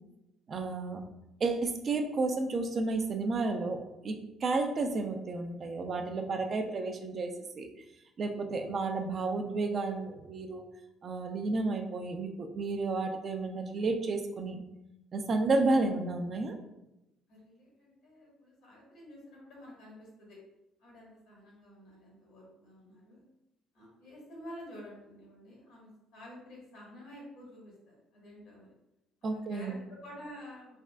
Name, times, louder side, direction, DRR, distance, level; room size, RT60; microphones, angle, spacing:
voice 1, 0.5-1.0 1.4-7.7 8.2-10.6 11.0-14.6 15.1-16.5 29.2-29.8, right 3 dB, 50° right, 4 dB, 0.4 m, -31 dB
voice 2, 17.3-20.4 20.8-23.3 23.7-28.7 29.2-30.8, equal, 80° left, -4 dB, 1.3 m, -50 dB
3.4 x 2.4 x 2.2 m, 0.90 s
supercardioid pair, 65°, 0 cm